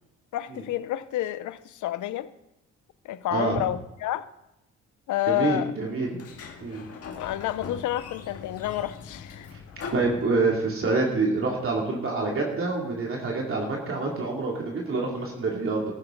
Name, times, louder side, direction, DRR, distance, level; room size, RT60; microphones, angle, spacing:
voice 1, 0.3-2.3 3.0-4.3 5.1-5.7 7.1-9.5, left 13 dB, 75° left, 0.7 m, -29 dB
voice 2, 5.3-6.1 6.6-6.8 9.9-15.9, right 3 dB, 45° right, 2.8 m, -26 dB
Sliding door, 6.1-10.9, left 5 dB, 50° left, 1.8 m, -41 dB
14.5 x 12.0 x 3.9 m
cardioid pair, 90°, 30 cm